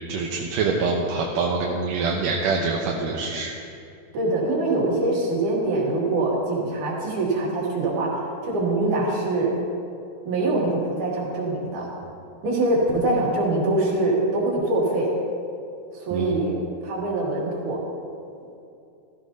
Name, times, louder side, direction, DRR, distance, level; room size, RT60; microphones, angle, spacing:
voice 1, 0.1-3.5 16.1-16.3, right 4 dB, 90° right, -2 dB, 2.5 m, -25 dB
voice 2, 4.1-8.1 8.4-9.5 10.3-11.9 12.4-15.1 15.9-16.5 16.8-17.8, right 2 dB, 75° right, -5 dB, 4.0 m, -23 dB
16.0 x 14.5 x 2.8 m, 2.6 s
omnidirectional pair, 3.6 m